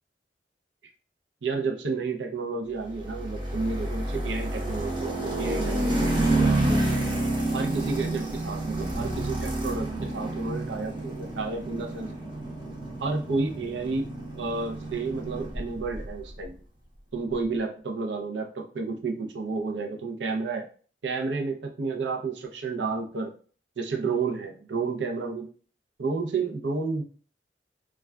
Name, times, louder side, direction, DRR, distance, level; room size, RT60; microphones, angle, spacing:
voice 1, 1.4-6.9 7.5-12.1 13.0-14.1 14.3-16.5 17.1-20.6 21.0-23.3 23.8-25.5 26.0-27.0, right 4 dB, 85° right, 3 dB, 0.5 m, -31 dB
sound 1, 2.9-16.1, right 2 dB, 30° right, 0.7 m, -29 dB
sound 2, 6.8-16.6, equal, 35° left, 0.6 m, -51 dB
2.3 x 2.2 x 3.4 m, 0.41 s
head